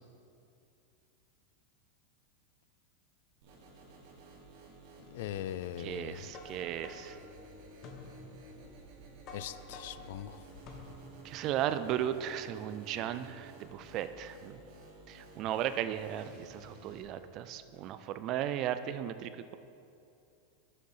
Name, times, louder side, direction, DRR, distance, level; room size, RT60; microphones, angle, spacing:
sound 1, 3.4-17.0, right 3 dB, 60° right, 1.4 m, -53 dB
voice 1, 5.1-6.3 9.3-10.4, left 11 dB, 70° left, 14 dB, 0.3 m, -40 dB
voice 2, 5.8-7.2 11.2-14.6 15.1-19.6, right 11 dB, 40° right, 12 dB, 0.4 m, -36 dB
sound 2, 6.3-11.3, left 3 dB, 40° left, 1.0 m, -51 dB
6.5 x 6.4 x 5.6 m, 2.6 s
supercardioid pair, 135°, 0 cm